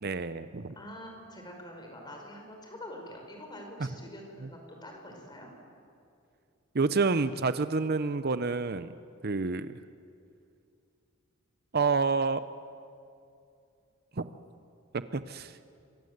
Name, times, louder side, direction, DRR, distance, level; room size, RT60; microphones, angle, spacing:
voice 1, 0.0-0.7 6.7-8.9 9.2-9.8 11.7-12.4 14.2-14.3 15.1-15.6, right 4 dB, 50° right, 12 dB, 0.7 m, -28 dB
voice 2, 0.8-5.5, left 1 dB, 20° left, 2 dB, 5.2 m, -45 dB
27.0 x 24.5 x 8.0 m, 2.5 s
head